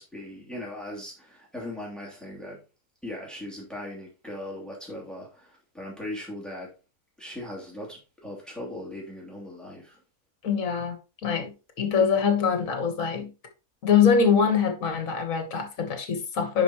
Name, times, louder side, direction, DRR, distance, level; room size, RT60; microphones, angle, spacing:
voice 1, 0.0-2.6 3.0-6.7 7.2-10.0, left 1 dB, ahead, 2.7 m, -39 dB
voice 2, 10.4-11.5 11.8-13.3 13.8-16.6, left 6 dB, 60° left, 1.7 m, -23 dB
10.0 x 4.9 x 3.0 m
omnidirectional pair, 1.6 m